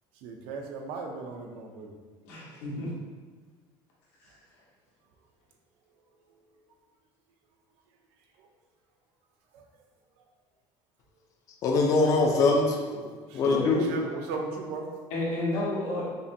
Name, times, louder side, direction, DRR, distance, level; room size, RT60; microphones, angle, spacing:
voice 1, 0.2-1.9 8.4-8.5 9.5-9.7 13.3-14.9, right 4 dB, 70° right, 2 dB, 0.5 m, -37 dB
voice 2, 2.2-2.9 4.2-4.3 13.4-13.9 15.1-16.0, left 2 dB, 85° left, -6 dB, 1.2 m, -31 dB
voice 3, 11.6-13.1 13.3-13.9, left 3 dB, 35° left, 0 dB, 0.4 m, -23 dB
5.3 x 2.2 x 2.6 m, 1.5 s
cardioid pair, 175°, 10 cm